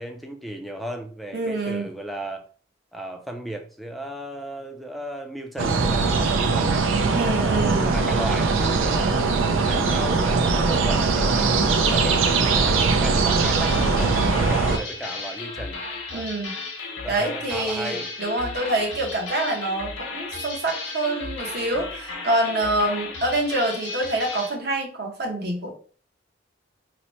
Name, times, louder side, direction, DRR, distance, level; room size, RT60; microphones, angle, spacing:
voice 1, 0.0-2.5 2.9-9.2 9.6-15.8 16.1-16.3 17.0-18.1, right 1 dB, ahead, 4 dB, 0.3 m, -35 dB
voice 2, 1.3-1.9 7.1-7.9 9.9-10.0 10.5-11.0 16.1-16.6 17.1-25.7, right 2 dB, 55° right, 1 dB, 0.9 m, -26 dB
sound 1, 5.6-14.8, right 4 dB, 90° right, 0.5 m, -21 dB
sound 2, 13.3-24.6, left 3 dB, 70° left, 0.8 m, -34 dB
3.0 x 2.0 x 4.1 m, 0.42 s
head